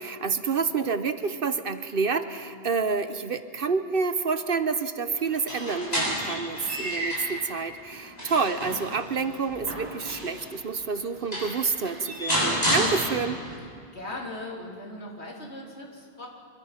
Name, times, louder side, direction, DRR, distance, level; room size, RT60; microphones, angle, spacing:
voice 1, 0.0-13.4, right 5 dB, 55° right, 10 dB, 1.0 m, -28 dB
sound 1, 5.3-7.4 7.9-10.5 11.0-11.1 11.3-13.5, equal, 35° left, 7.4 m, -30 dB
voice 2, 13.9-16.3, left 1 dB, 70° left, -2 dB, 3.7 m, -38 dB
24.5 x 22.5 x 5.8 m, 2.3 s
omnidirectional pair, 1.2 m